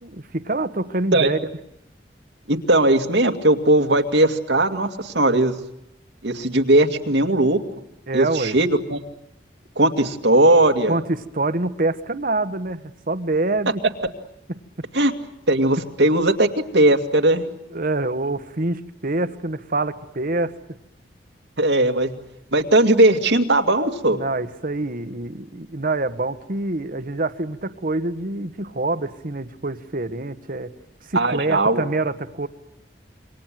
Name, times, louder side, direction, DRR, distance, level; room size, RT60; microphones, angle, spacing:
voice 1, 0.0-1.4 8.1-8.6 10.9-13.8 17.7-20.5 24.1-30.7 31.1-32.5, right 2 dB, 55° right, 12 dB, 1.5 m, -26 dB
voice 2, 2.5-5.5 6.2-7.6 8.1-9.0 9.8-11.0 14.9-15.1 15.5-16.5 16.7-17.5 21.6-22.1 22.5-24.2 31.1-31.8, right 1 dB, 80° right, 5 dB, 2.3 m, -18 dB
28.0 x 24.5 x 7.7 m, 0.82 s
head